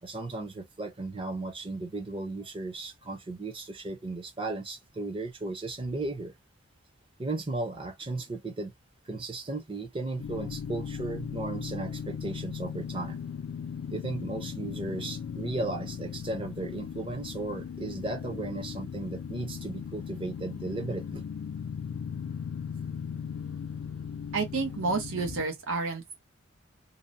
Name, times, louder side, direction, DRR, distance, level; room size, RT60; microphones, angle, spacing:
voice 1, 0.0-6.3 7.2-8.7 9.1-13.2 13.9-21.2, right 2 dB, 25° right, 0.6 m, -35 dB
sound 1, 10.2-25.4, left 7 dB, 75° left, 0.4 m, -38 dB
voice 2, 24.3-26.1, right 3 dB, 85° right, 0.8 m, -30 dB
2.7 x 2.0 x 2.6 m
head